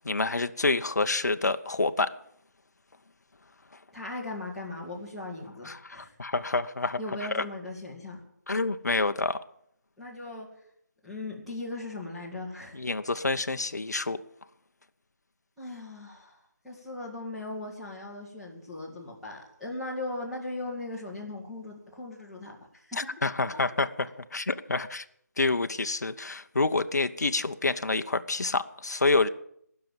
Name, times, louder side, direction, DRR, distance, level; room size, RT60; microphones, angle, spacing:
voice 1, 0.0-2.1 5.6-7.0 7.3-7.4 8.5-9.4 12.7-14.2 22.9-25.0 25.4-29.3, left 3 dB, 65° left, 9 dB, 0.9 m, -28 dB
voice 2, 3.9-6.1 7.0-8.2 10.0-10.5 11.0-12.8 15.6-23.0, left 2 dB, ahead, -9 dB, 2.5 m, -38 dB
19.0 x 6.9 x 9.0 m, 0.70 s
figure-of-eight pair, 170°, 10 cm